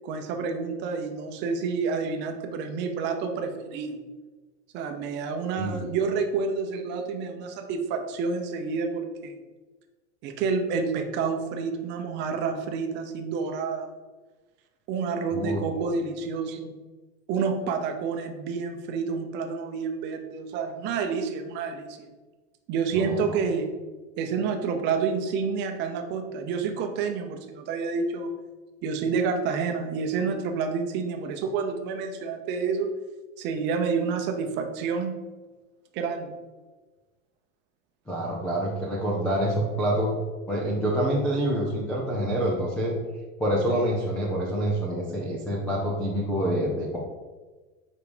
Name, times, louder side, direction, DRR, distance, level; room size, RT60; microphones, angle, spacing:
voice 1, 0.0-4.0 4.7-9.4 10.2-13.9 14.9-16.8 17.3-22.1 22.7-23.7 24.2-28.4 28.8-32.9 33.4-35.1 35.9-36.4, right 5 dB, 30° right, 5 dB, 0.7 m, -29 dB
voice 2, 5.6-5.9 15.3-15.6 23.0-23.4 38.1-40.1 40.5-43.0 43.4-47.0, right 1 dB, 5° left, -5 dB, 0.3 m, -27 dB
7.2 x 4.8 x 5.0 m, 1.3 s
supercardioid pair, 165°, 38 cm